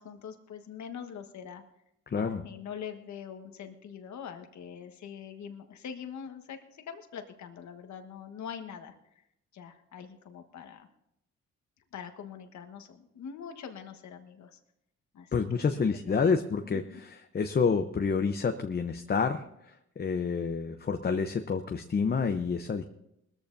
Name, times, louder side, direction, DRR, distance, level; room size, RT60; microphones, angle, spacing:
voice 1, 0.0-1.6 2.1-8.9 9.5-10.9 11.9-14.6 15.1-16.3 16.6-17.0, left 7 dB, 65° left, 6 dB, 1.5 m, -44 dB
voice 2, 2.1-2.4 15.3-22.8, left 5 dB, 30° left, 6 dB, 0.8 m, -29 dB
20.5 x 14.0 x 2.7 m, 0.81 s
cardioid pair, 90°, 30 cm